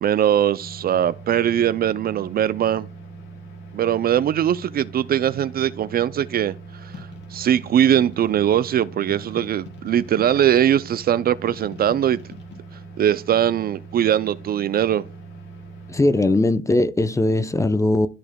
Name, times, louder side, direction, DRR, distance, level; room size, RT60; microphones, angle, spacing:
voice 1, 0.0-2.9 3.7-6.5 6.8-12.2 13.0-15.1, right 10 dB, 50° right, 0.4 m, -21 dB
sound 1, 0.6-16.2, right 3 dB, 85° left, 2.6 m, -41 dB
sound 2, 6.9-8.5 9.1-10.8 11.5-12.6, left 6 dB, 60° left, 2.7 m, -42 dB
voice 2, 15.9-18.1, left 2 dB, 15° left, 0.6 m, -19 dB
12.5 x 4.8 x 2.2 m
cardioid pair, 90°, 20 cm